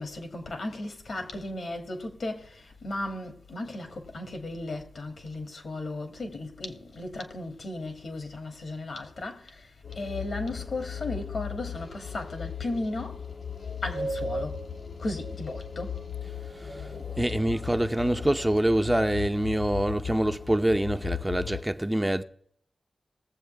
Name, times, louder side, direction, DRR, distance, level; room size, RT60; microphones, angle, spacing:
voice 1, 0.0-9.6 10.0-13.2 13.8-14.6 15.0-15.9, left 2 dB, 70° left, 2.4 m, -35 dB
sound 1, 9.8-21.6, left 5 dB, 85° left, 2.3 m, -37 dB
voice 2, 17.2-22.2, right 1 dB, 15° right, 0.7 m, -25 dB
20.0 x 7.6 x 3.4 m
cardioid pair, 55°, 0 cm